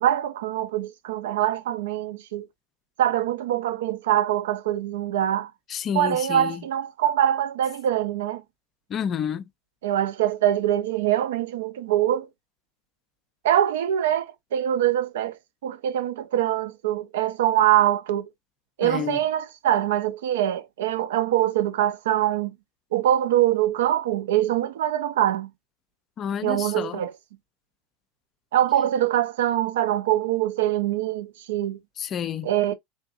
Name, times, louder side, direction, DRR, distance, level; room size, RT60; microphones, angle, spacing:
voice 1, 0.0-2.5 3.0-5.5 5.9-8.4 9.8-12.3 13.4-15.4 15.6-18.3 18.8-22.5 22.9-25.5 26.4-27.1 28.5-31.8 32.4-32.7, right 12 dB, 65° right, 0.4 m, -23 dB
voice 2, 5.7-6.6 8.9-9.4 18.8-19.2 26.2-27.0 32.0-32.5, left 8 dB, 35° left, 0.3 m, -29 dB
3.3 x 2.6 x 2.5 m
figure-of-eight pair, 75°, 0 cm